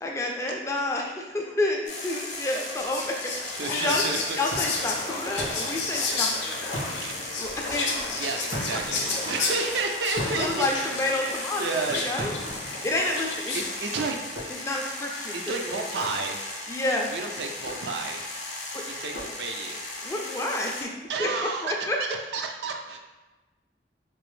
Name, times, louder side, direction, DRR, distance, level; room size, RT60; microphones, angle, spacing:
voice 1, 0.0-4.0 4.4-6.6 7.4-7.9 10.4-11.6 11.9-12.3 12.8-13.6 14.6-15.3 15.6-15.8 16.7-17.1 18.7-18.8 20.0-20.9 21.2-22.0, left 2 dB, 15° left, 0 dB, 0.3 m, -29 dB
sound 1, 1.8-20.8, left 2 dB, 45° left, 0.7 m, -37 dB
Whispering, 2.5-13.8, left 3 dB, 85° left, 0.6 m, -32 dB
voice 2, 3.5-4.4 4.7-4.9 7.0-7.2 7.7-12.1 13.5-14.5 15.3-16.4 16.7-18.3 18.8-19.8 21.1-23.0, right 3 dB, 70° right, 3 dB, 0.4 m, -32 dB
sound 2, 4.5-6.3 6.7-7.9 8.5-11.5 12.2-13.6 14.3-15.0 16.0-16.7 17.5-18.3 19.1-19.8, equal, 90° right, 1.5 m, -39 dB
3.0 x 2.5 x 3.1 m, 1.2 s
head